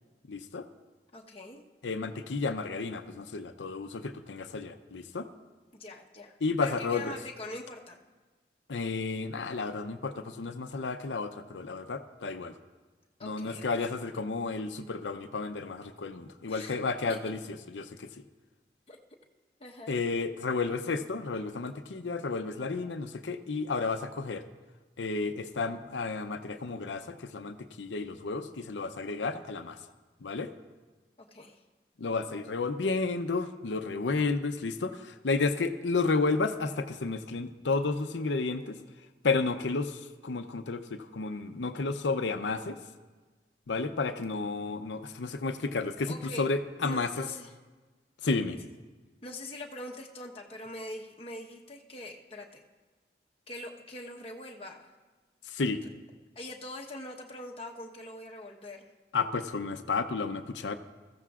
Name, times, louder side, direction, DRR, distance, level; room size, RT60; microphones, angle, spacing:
voice 1, 0.3-0.7 1.8-5.3 6.4-7.2 8.7-12.5 13.2-17.4 17.7-18.1 19.9-24.4 25.0-29.8 30.2-30.5 32.0-38.8 39.2-42.8 43.7-47.1 48.2-48.6 55.5-55.8 59.1-60.8, left 3 dB, 85° left, 8 dB, 0.6 m, -32 dB
voice 2, 1.1-1.6 5.7-8.0 13.2-13.9 16.5-16.8 17.1-17.2 17.4-17.5 18.9-19.0 19.6-19.9 31.2-31.6 46.1-46.5 46.8-47.5 49.2-52.6 53.5-54.9 56.3-58.9, left 1 dB, 30° left, 0 dB, 1.1 m, -43 dB
21.5 x 14.5 x 2.4 m, 1.3 s
head